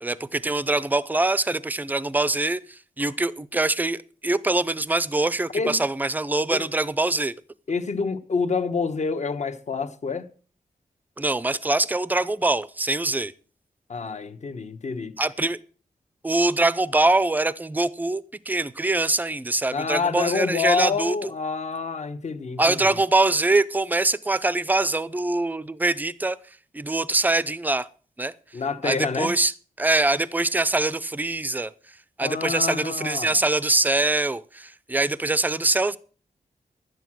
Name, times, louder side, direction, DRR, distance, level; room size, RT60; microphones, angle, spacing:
voice 1, 0.0-7.3 11.2-13.3 15.2-15.6 16.2-21.3 22.6-26.4 26.7-27.9 28.2-28.3 28.8-29.5 29.8-31.7 32.2-36.0, right 2 dB, 10° right, 0.5 m, -23 dB
voice 2, 7.7-10.3 13.9-15.1 19.7-23.0 28.5-29.3 32.2-33.4, left 5 dB, 55° left, 1.1 m, -27 dB
11.5 x 9.3 x 6.2 m
wide cardioid pair, 170°, 15 cm